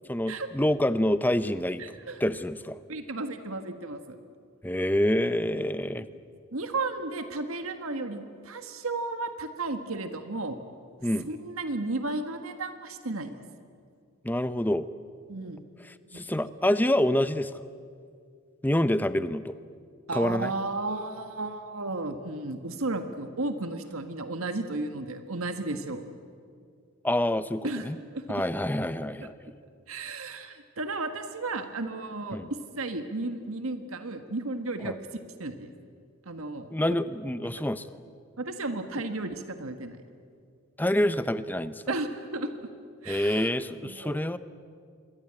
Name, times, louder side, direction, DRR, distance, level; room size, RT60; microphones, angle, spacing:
voice 1, 0.1-1.8 2.2-2.8 4.6-6.1 11.0-11.3 14.2-14.9 16.1-17.5 18.6-19.5 20.1-20.5 27.0-28.0 28.3-29.3 32.3-32.5 34.8-35.0 36.7-38.0 40.8-41.8 43.1-44.4, left 1 dB, 10° left, 12 dB, 0.7 m, -27 dB
voice 2, 1.8-2.2 2.9-4.2 5.6-6.1 6.5-10.6 11.2-13.4 15.3-15.6 16.1-16.4 20.1-26.0 27.6-28.4 29.0-29.3 29.9-35.7 36.2-36.7 38.4-40.0 41.9-42.5 43.0-43.5 43.8-44.3, right 2 dB, 75° right, 7 dB, 1.6 m, -34 dB
26.0 x 22.5 x 8.8 m, 2.2 s
head